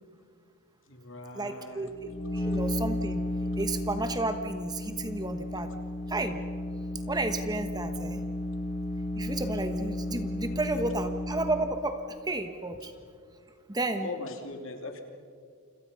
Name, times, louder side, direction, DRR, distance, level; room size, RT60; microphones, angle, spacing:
voice 1, 0.8-2.5 9.2-9.3 14.0-15.0, left 3 dB, 60° left, 4 dB, 3.1 m, -41 dB
voice 2, 1.4-1.9 2.3-3.2 3.6-5.7 6.1-6.4 7.1-8.2 9.2-12.9 13.7-14.1, right 2 dB, 20° right, 8 dB, 1.2 m, -32 dB
sound 1, 1.9-11.7, left 1 dB, 25° left, 3.8 m, -33 dB
29.0 x 26.0 x 5.6 m, 2.2 s
head